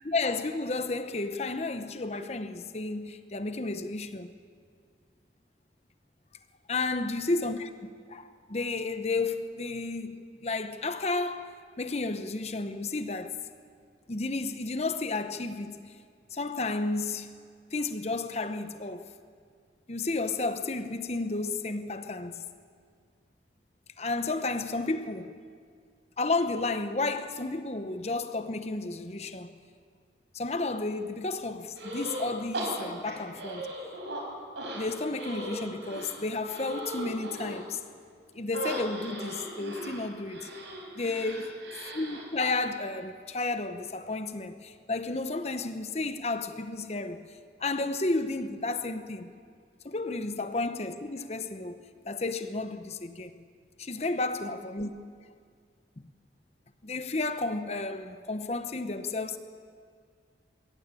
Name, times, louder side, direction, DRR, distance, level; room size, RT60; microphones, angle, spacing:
voice 1, 0.0-4.3 6.7-7.7 8.1-13.4 14.1-15.9 16.3-17.3 17.7-19.1 19.9-22.5 24.0-25.3 26.2-29.5 30.3-33.7 34.7-37.8 38.3-40.5 40.9-41.5 41.9-47.3 47.6-49.3 49.8-53.4 53.8-54.9 56.8-59.4, left 3 dB, 35° left, 0.9 m, -32 dB
sound 1, 31.7-32.3 32.5-34.2 34.6-37.6 38.5-42.3, right 1 dB, 85° right, 5.1 m, -38 dB
22.0 x 16.5 x 9.1 m
head